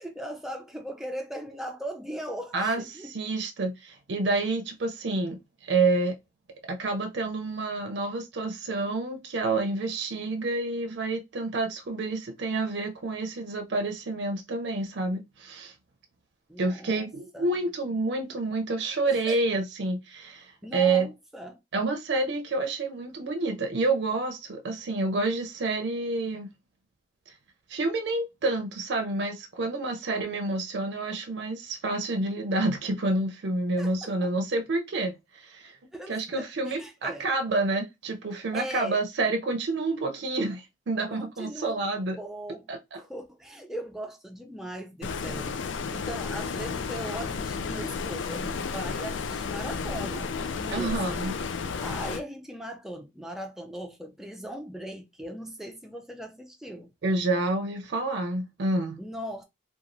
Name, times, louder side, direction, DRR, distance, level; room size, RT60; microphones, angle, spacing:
voice 1, 0.0-3.1 16.5-17.5 19.1-19.4 20.6-21.6 33.8-34.1 35.9-37.3 38.5-39.0 41.1-41.8 42.2-42.7 42.9-51.2 51.8-56.9 59.0-59.4, equal, ahead, 0.3 m, -39 dB
voice 2, 2.5-6.1 6.7-15.7 16.6-21.1 21.7-26.5 27.3-27.4 27.7-35.8 36.1-42.2 42.7-43.0 50.7-51.3 57.0-59.0, right 2 dB, 70° right, 0.5 m, -28 dB
Stream, 45.0-52.2, left 5 dB, 85° left, 0.4 m, -32 dB
3.0 x 2.3 x 2.5 m
head